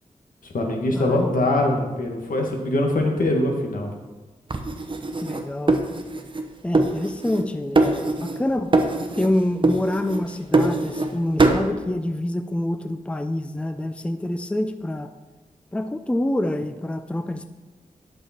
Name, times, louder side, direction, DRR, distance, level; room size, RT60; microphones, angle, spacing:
voice 1, 0.4-3.9, left 1 dB, 80° left, 1 dB, 1.6 m, -23 dB
voice 2, 0.9-1.3 5.2-5.8 6.6-8.8 9.2-15.1 15.7-17.4, left 1 dB, 10° left, 8 dB, 0.4 m, -26 dB
sound 1, 4.5-6.5 6.7-7.5 7.8-8.4 8.7-9.3 9.6-11.1 11.4-11.7, right 2 dB, 35° right, 0.9 m, -22 dB
11.0 x 6.6 x 4.4 m, 1.2 s
wide cardioid pair, 90°, 14 cm